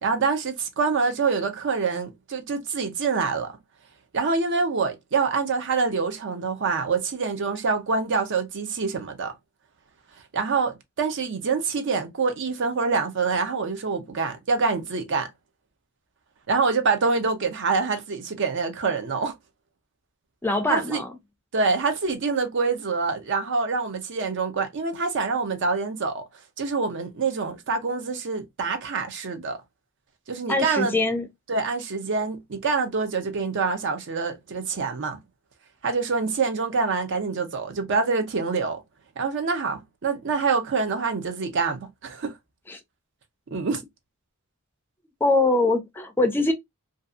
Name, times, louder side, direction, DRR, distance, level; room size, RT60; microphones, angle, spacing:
voice 1, 0.0-3.6 4.1-9.3 10.3-15.3 16.5-19.3 20.7-21.0 21.5-26.2 26.6-29.6 30.3-30.9 31.5-35.2 35.8-38.8 39.2-42.3 43.5-43.8, right 4 dB, 60° right, 0.5 m, -26 dB
voice 2, 20.4-21.1 30.5-31.3 42.7-42.8 45.2-46.5, left 2 dB, 10° left, 0.4 m, -23 dB
2.6 x 2.3 x 2.4 m
head